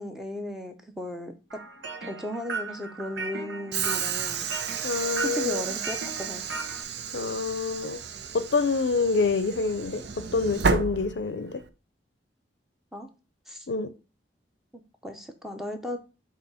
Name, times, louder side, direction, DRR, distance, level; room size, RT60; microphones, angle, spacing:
voice 1, 0.0-1.6 2.0-4.5 5.2-6.5 12.9-13.1 13.5-13.7 15.0-16.0, left 1 dB, ahead, 0.7 m, -36 dB
sound 1, 1.5-6.8, right 3 dB, 90° right, 1.1 m, -37 dB
Train / Sliding door, 3.7-11.7, right 6 dB, 70° right, 0.6 m, -32 dB
voice 2, 4.8-5.6 7.1-8.0 8.3-10.0 10.3-11.6 13.7-13.9, left 4 dB, 75° left, 0.5 m, -26 dB
7.0 x 2.9 x 5.5 m
head